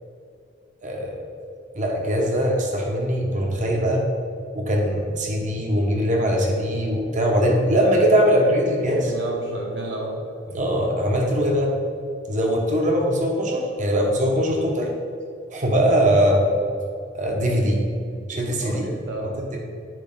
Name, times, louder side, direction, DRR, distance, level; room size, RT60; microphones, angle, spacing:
voice 1, 0.8-1.2 1.7-4.0 4.5-9.1 10.5-11.7 12.3-14.9 15.5-16.4 17.1-17.8 18.3-18.9 19.4-19.6, equal, 40° right, 1 dB, 1.0 m, -21 dB
voice 2, 9.1-10.2 18.3-19.6, right 1 dB, 65° right, -2 dB, 1.4 m, -31 dB
9.0 x 4.8 x 3.6 m, 2.4 s
head